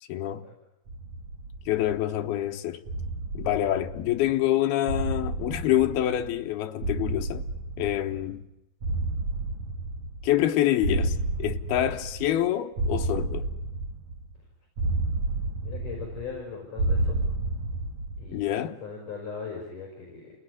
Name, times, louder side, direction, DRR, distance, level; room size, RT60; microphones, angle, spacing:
voice 1, 0.1-0.5 1.7-2.8 3.3-7.4 7.8-8.4 10.2-13.5 18.3-18.8, left 13 dB, 70° left, 2.5 m, -26 dB
sound 1, 0.9-2.2 2.9-4.4 4.9-6.5 6.8-8.4 8.8-10.5 10.8-12.4 12.8-14.4 14.8-16.4 16.8-18.4, right 2 dB, 85° right, 1.5 m, -31 dB
voice 2, 15.6-17.2 18.2-18.5 18.8-20.3, left 5 dB, 40° left, 6.2 m, -39 dB
29.5 x 18.0 x 9.9 m
omnidirectional pair, 5.7 m